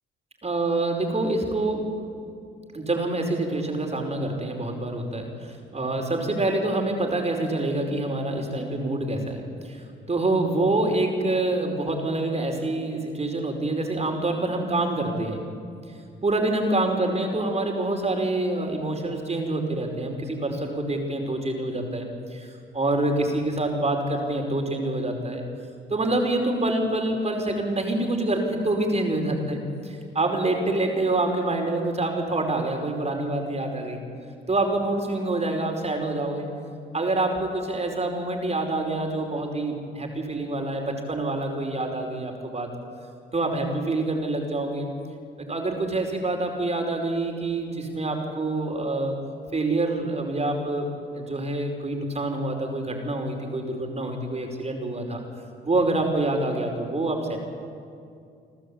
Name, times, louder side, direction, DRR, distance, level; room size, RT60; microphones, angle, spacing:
voice 1, 0.4-1.9 2.7-15.4 16.2-25.4 25.9-34.0 34.5-36.5 36.9-42.7 43.3-44.9 45.5-49.2 49.5-50.9 51.1-55.2 55.6-57.4, right 2 dB, 30° right, 3 dB, 5.0 m, -26 dB
29.5 x 12.5 x 8.7 m, 2.4 s
supercardioid pair, 70°, 21 cm